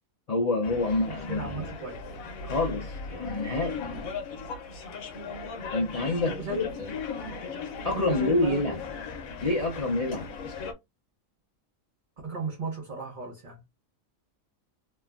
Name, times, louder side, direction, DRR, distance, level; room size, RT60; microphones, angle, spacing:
voice 1, 0.3-1.7 2.4-3.9 5.7-6.4 6.8-6.9 7.8-8.8 9.4-10.3, left 2 dB, 45° left, 0.5 m, -27 dB
sound 1, 0.6-10.7, left 4 dB, 85° left, 1.1 m, -37 dB
voice 2, 1.1-2.0 3.9-4.0 6.2-6.7 7.9-8.6 12.2-13.6, right 2 dB, 45° right, 0.8 m, -35 dB
3.2 x 2.1 x 2.3 m
omnidirectional pair, 1.4 m